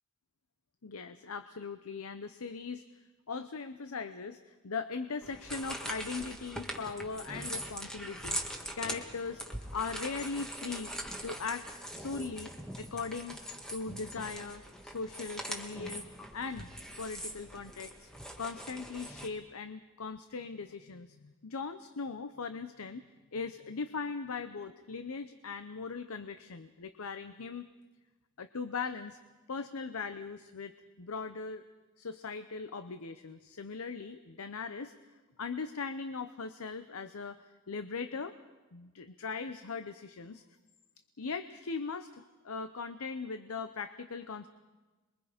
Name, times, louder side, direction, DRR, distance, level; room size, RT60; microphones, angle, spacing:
voice 1, 0.8-2.8 3.3-9.4 9.7-10.9 11.2-11.6 11.9-13.4 13.7-16.0 16.3-16.7 17.0-18.1 18.4-23.0 23.3-27.7 28.4-29.2 29.5-31.6 32.0-34.9 35.4-38.3 38.7-40.4 41.2-44.5, left 4 dB, 75° left, 10 dB, 0.7 m, -39 dB
sound 1, 5.2-19.3, equal, 5° left, 1.6 m, -42 dB
27.0 x 22.5 x 5.1 m, 1.2 s
head